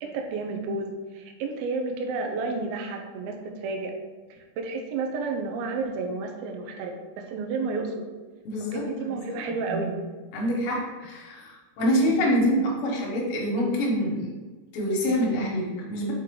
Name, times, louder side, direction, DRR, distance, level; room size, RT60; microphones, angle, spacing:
voice 1, 0.0-3.9 4.6-8.1 8.6-10.0 12.0-12.3, right 3 dB, 85° right, 3 dB, 2.1 m, -31 dB
voice 2, 8.4-9.2 10.3-14.3 14.7-16.1, equal, 65° left, -3 dB, 2.9 m, -26 dB
6.3 x 5.8 x 3.7 m, 1.3 s
omnidirectional pair, 5.3 m